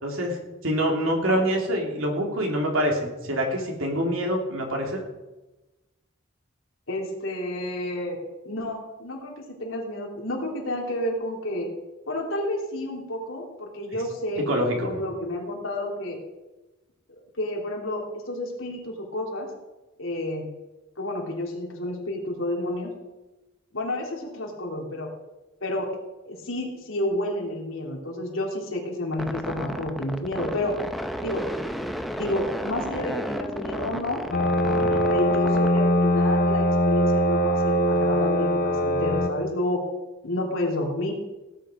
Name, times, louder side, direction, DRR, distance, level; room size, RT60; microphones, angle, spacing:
voice 1, 0.0-5.0 14.4-15.1 34.8-35.0, equal, 85° right, 1 dB, 3.2 m, -26 dB
voice 2, 6.9-8.2 8.4-11.7 12.1-14.5 14.7-16.2 17.1-19.5 20.0-20.5 21.0-22.9 23.7-25.1 25.6-25.9 26.3-30.7 31.2-31.5 32.1-34.2 35.1-39.8 40.2-41.1, left 1 dB, 75° left, -1 dB, 3.4 m, -30 dB
sound 1, 29.1-35.8, equal, ahead, 0.7 m, -33 dB
Drum, 33.0-36.3, right 1 dB, 20° right, 3.1 m, -42 dB
sound 2, 34.3-39.3, equal, 45° left, 1.0 m, -22 dB
17.5 x 9.0 x 5.1 m, 1.1 s
head